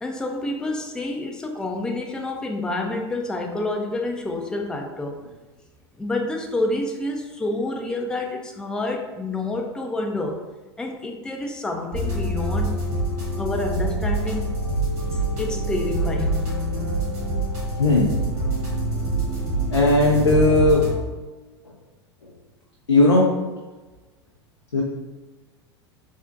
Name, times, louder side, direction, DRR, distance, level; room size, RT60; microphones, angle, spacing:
voice 1, 0.0-5.2 6.0-10.4 10.8-12.8 13.4-14.5 15.1-16.4, left 2 dB, 5° left, 1 dB, 0.4 m, -28 dB
sound 1, 11.9-20.9, right 1 dB, 45° right, 1.5 m, -25 dB
voice 2, 17.8-18.1 19.7-20.8 22.9-23.3 24.7-24.8, left 2 dB, 90° left, -2 dB, 0.4 m, -17 dB
3.5 x 2.1 x 2.6 m, 1.2 s
figure-of-eight pair, 85°, 14 cm